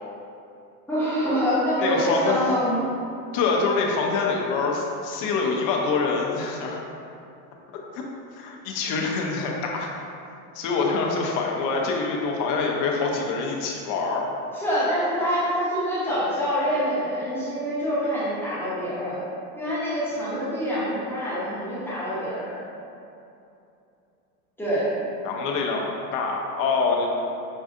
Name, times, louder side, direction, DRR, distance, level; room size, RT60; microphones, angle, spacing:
voice 1, 0.9-2.9 14.5-19.2 19.5-22.6 24.6-24.9, equal, 5° left, -11 dB, 0.9 m, -25 dB
voice 2, 1.8-2.5 3.3-6.8 7.9-8.0 8.3-9.9 10.5-14.2 25.2-27.1, left 4 dB, 40° left, 0 dB, 0.6 m, -25 dB
5.3 x 2.4 x 2.5 m, 2.7 s
hypercardioid pair, 115°, 47 cm